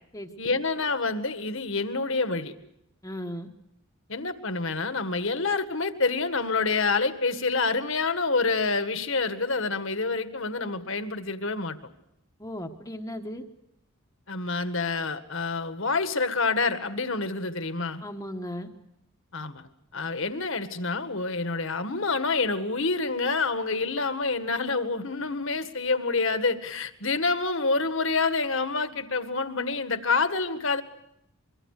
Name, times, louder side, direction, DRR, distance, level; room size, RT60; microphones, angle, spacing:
voice 1, 0.4-2.5 4.1-11.8 14.3-18.0 19.3-19.6 19.9-30.8, left 3 dB, 60° left, 10 dB, 1.9 m, -27 dB
voice 2, 3.0-3.5 12.4-13.4 18.0-18.7, equal, 15° left, 3 dB, 1.3 m, -36 dB
25.5 x 23.5 x 6.7 m, 0.80 s
head